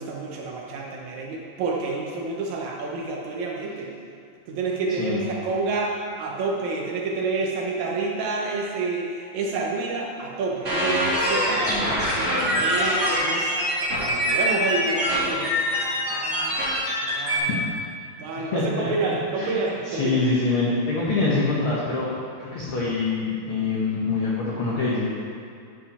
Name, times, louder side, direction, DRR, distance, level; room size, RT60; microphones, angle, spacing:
voice 1, 0.0-3.9 4.5-11.5 12.2-13.5 14.0-15.6 16.1-17.6 18.2-20.2, right 3 dB, 70° right, -1 dB, 1.9 m, -29 dB
sound 1, 10.6-17.4, equal, 25° right, 2.1 m, -24 dB
voice 2, 11.4-11.8 12.1-12.6 17.5-17.6 18.5-18.9 19.4-22.1 22.4-25.1, left 3 dB, 70° left, -6 dB, 1.2 m, -25 dB
11.0 x 5.0 x 4.2 m, 2.4 s
omnidirectional pair, 3.9 m